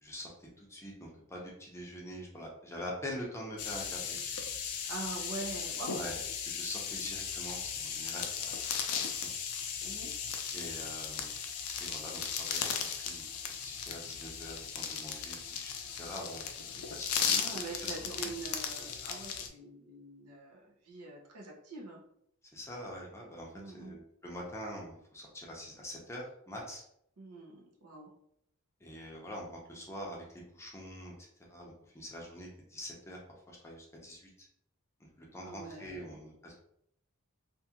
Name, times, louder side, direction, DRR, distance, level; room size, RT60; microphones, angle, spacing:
voice 1, 0.0-4.2 5.9-8.6 8.9-9.0 9.5-10.0 10.5-11.3 11.8-13.2 13.6-16.7 17.0-17.9 18.2-18.3 22.5-26.8 28.8-31.1 31.5-33.2 33.5-34.5 35.0-36.6, equal, 10° left, -2 dB, 0.6 m, -45 dB
sound 1, 3.6-19.5, left 7 dB, 80° left, 0.4 m, -37 dB
voice 2, 4.9-6.0 6.9-7.1 9.8-10.1 17.3-22.0 23.5-24.0 27.2-28.1 35.4-36.2, right 3 dB, 85° right, -1 dB, 0.7 m, -44 dB
2.6 x 2.4 x 2.8 m, 0.71 s
head